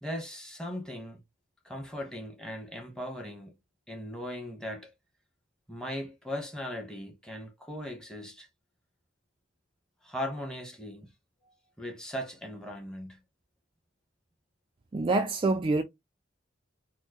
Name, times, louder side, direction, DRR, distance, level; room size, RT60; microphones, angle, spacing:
voice 1, 0.0-1.2 1.6-3.5 3.9-4.9 5.7-8.5 10.0-11.1 11.8-13.2, equal, 5° left, 1.1 m, -38 dB
voice 2, 14.9-15.8, right 3 dB, 25° right, 0.3 m, -26 dB
4.4 x 2.0 x 2.9 m
head